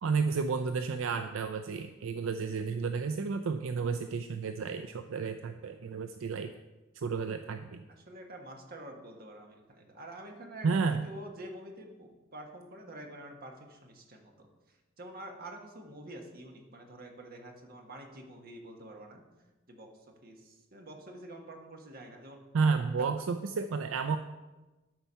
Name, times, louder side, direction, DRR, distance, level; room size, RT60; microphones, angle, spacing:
voice 1, 0.0-6.5 6.9-7.8 10.6-11.0 22.5-24.2, right 5 dB, 75° right, 8 dB, 0.4 m, -31 dB
voice 2, 7.9-19.2 19.7-19.9 20.2-22.4 23.0-23.1, right 1 dB, 45° right, 2 dB, 1.4 m, -47 dB
12.5 x 4.6 x 5.6 m, 1.1 s
head